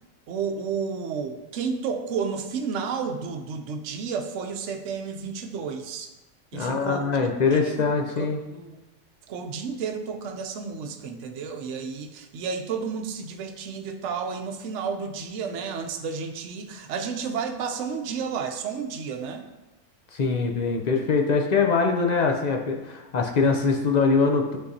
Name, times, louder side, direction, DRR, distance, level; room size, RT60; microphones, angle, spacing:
voice 1, 0.3-6.1 6.5-8.1 8.5-8.8 9.3-19.4, right 6 dB, 65° right, 5 dB, 0.9 m, -32 dB
voice 2, 6.5-8.4 20.1-24.6, left 4 dB, 60° left, 2 dB, 0.4 m, -23 dB
9.7 x 3.8 x 2.7 m, 1.0 s
omnidirectional pair, 1.4 m